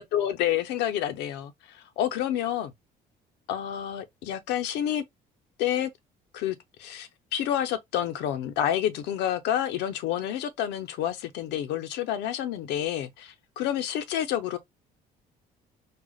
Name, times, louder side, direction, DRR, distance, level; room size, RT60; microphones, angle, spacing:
voice 1, 0.0-1.5 2.0-2.7 3.5-5.0 5.6-5.9 6.3-14.6, left 11 dB, 85° left, 0.7 m, -29 dB
6.2 x 2.4 x 2.4 m
cardioid pair, 110°, 17 cm